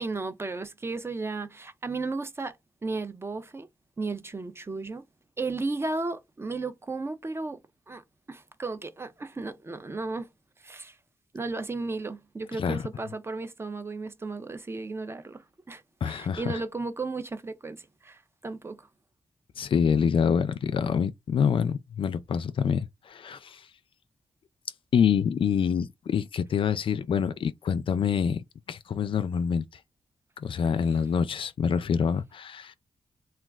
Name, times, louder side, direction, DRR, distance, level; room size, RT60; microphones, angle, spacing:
voice 1, 0.0-2.6 2.8-3.7 4.0-5.0 5.4-7.6 7.9-8.0 8.3-10.3 10.6-11.0 11.3-18.9, right 3 dB, 25° right, 0.4 m, -34 dB
voice 2, 16.0-16.6 19.6-23.6 24.9-28.4 28.7-29.6 30.4-32.7, left 7 dB, 60° left, 0.4 m, -26 dB
2.3 x 2.3 x 3.2 m
cardioid pair, 90°, 10 cm